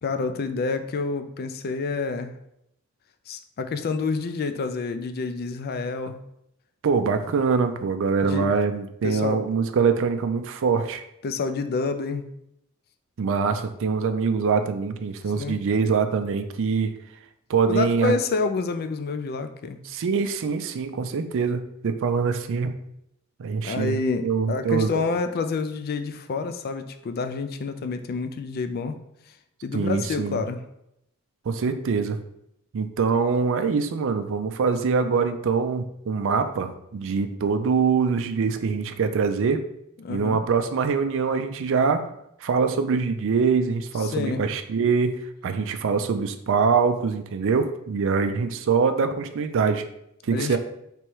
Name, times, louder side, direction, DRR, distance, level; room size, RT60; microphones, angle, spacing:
voice 1, 0.0-2.4 3.3-6.2 8.2-8.5 9.0-9.4 11.2-12.3 15.4-15.6 17.7-19.8 23.6-29.0 29.6-30.6 40.0-40.4 44.0-44.4 50.3-50.6, left 4 dB, 45° left, 8 dB, 0.4 m, -28 dB
voice 2, 6.8-11.0 13.2-16.9 17.5-18.1 19.9-22.7 23.4-24.0 24.2-25.0 29.7-30.4 31.5-32.2 32.7-39.6 40.1-42.0 42.4-49.8 50.2-50.6, right 5 dB, 60° right, 9 dB, 0.4 m, -24 dB
3.3 x 3.1 x 4.6 m, 0.78 s
head